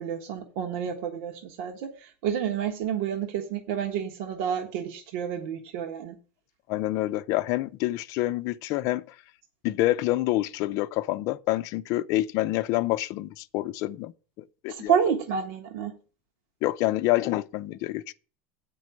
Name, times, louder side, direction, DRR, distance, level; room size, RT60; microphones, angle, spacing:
voice 1, 0.0-6.2 14.7-15.9, right 8 dB, 65° right, 1.4 m, -29 dB
voice 2, 6.7-9.0 9.6-14.1 14.6-15.1 16.6-18.0, left 17 dB, 50° left, 0.6 m, -27 dB
8.2 x 5.4 x 7.4 m
supercardioid pair, 140°, 7 cm